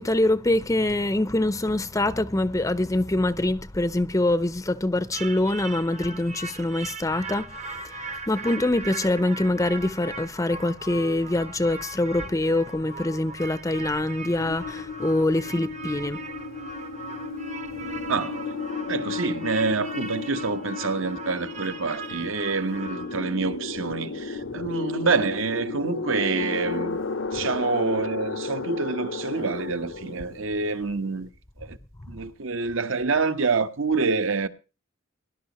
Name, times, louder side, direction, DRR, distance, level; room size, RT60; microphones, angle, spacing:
voice 1, 0.0-16.2, left 1 dB, 15° left, 0.6 m, -24 dB
sound 1, 5.1-23.1, right 3 dB, 35° right, 0.8 m, -39 dB
sound 2, 14.4-31.3, left 4 dB, 70° left, 0.8 m, -34 dB
voice 2, 18.9-27.0 27.3-31.3 31.6-31.8 32.1-34.5, right 4 dB, 65° right, 1.1 m, -27 dB
20.0 x 11.5 x 3.0 m
head